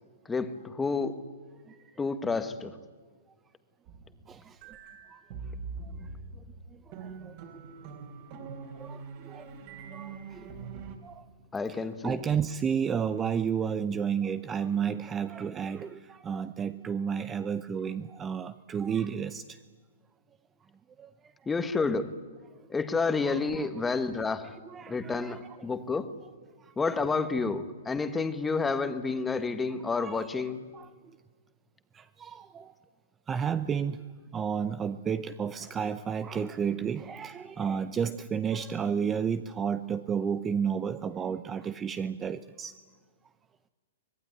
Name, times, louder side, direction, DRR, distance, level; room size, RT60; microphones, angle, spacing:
voice 1, 0.3-1.2 2.0-2.8 11.5-12.2 21.5-22.2 22.7-24.5 24.9-26.1 26.8-30.6, left 4 dB, 10° left, 10 dB, 1.4 m, -30 dB
sound 1, 3.9-11.0, right 4 dB, 45° right, 4.0 m, -43 dB
voice 2, 4.3-4.6 5.1-5.2 5.8-5.9 6.9-7.3 8.8-9.5 9.9-10.5 11.0-11.3 11.7-19.6 21.0-21.1 23.2-23.7 24.4-25.6 26.6-26.7 29.9-30.3 30.7-30.9 31.9-32.7 33.3-34.0 34.3-42.8, right 7 dB, 15° right, 13 dB, 0.7 m, -32 dB
25.0 x 19.0 x 9.8 m, 1.5 s
hypercardioid pair, 145°, 0 cm